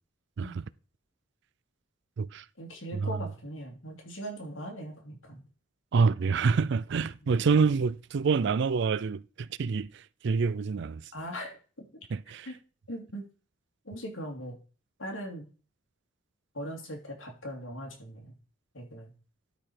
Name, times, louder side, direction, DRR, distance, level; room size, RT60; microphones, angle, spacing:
voice 1, 2.6-5.4 11.1-11.9 12.4-12.6 12.9-13.3 13.8-14.6 15.0-15.4 16.5-18.4 18.7-19.1, equal, 75° left, 2.9 m, -40 dB
voice 2, 5.9-9.9 10.2-11.0 12.1-12.5, right 5 dB, 60° right, 0.4 m, -26 dB
12.0 x 5.0 x 4.5 m
head